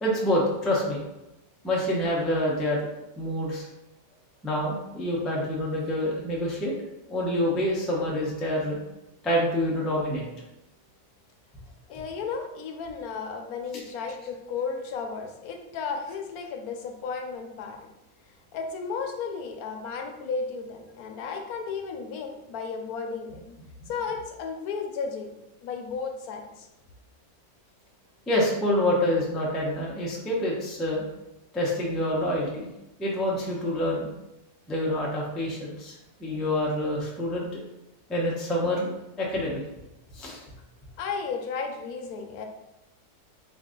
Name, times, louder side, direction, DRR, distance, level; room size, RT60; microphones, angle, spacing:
voice 1, 0.0-1.0 1.6-2.9 3.2-3.7 4.4-6.7 7.1-8.8 9.2-10.2 28.3-31.0 31.5-32.7 33.0-34.1 34.7-35.9 36.2-37.5 38.1-39.6 40.1-40.4, left 1 dB, ahead, -4 dB, 0.4 m, -27 dB
voice 2, 11.9-17.8 18.5-25.3 25.6-26.7 41.0-42.4, left 5 dB, 80° left, 3 dB, 1.1 m, -34 dB
3.9 x 2.6 x 3.6 m, 0.93 s
omnidirectional pair, 1.6 m